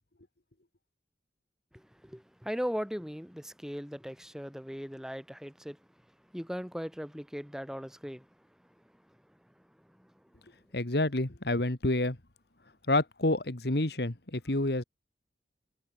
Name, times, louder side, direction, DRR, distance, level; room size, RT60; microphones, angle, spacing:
voice 1, 1.7-5.8 6.3-8.2, equal, 5° right, 3.4 m, -38 dB
voice 2, 10.7-12.2 12.9-14.8, left 2 dB, 60° left, 1.8 m, -28 dB
head